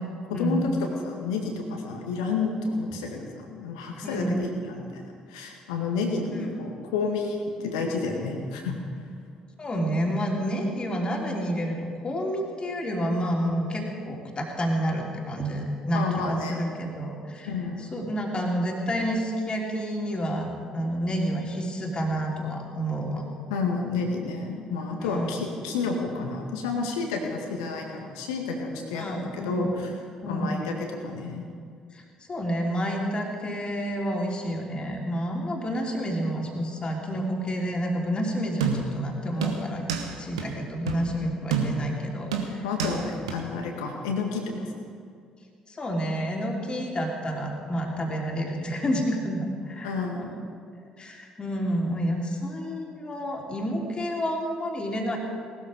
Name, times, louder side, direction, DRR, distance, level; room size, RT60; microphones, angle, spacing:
voice 1, 0.3-0.7 1.0-8.8 15.9-16.7 17.5-17.8 23.5-29.9 30.3-31.5 42.6-44.8 49.8-50.4, left 4 dB, 70° left, 2 dB, 2.0 m, -30 dB
voice 2, 4.0-4.5 6.3-6.4 9.6-17.5 17.9-23.3 25.0-25.3 28.9-29.7 30.2-30.5 31.9-39.8 40.2-42.6 45.7-50.3 51.0-55.2, equal, 30° left, 0 dB, 3.2 m, -29 dB
sound 1, 38.6-39.0 39.4-40.1 40.4-40.5 40.9-41.1 41.5-42.0 42.3-43.0 43.3-43.4, right 6 dB, 75° right, 1.3 m, -28 dB
19.0 x 13.0 x 5.3 m, 2.3 s
figure-of-eight pair, 45°, 3 cm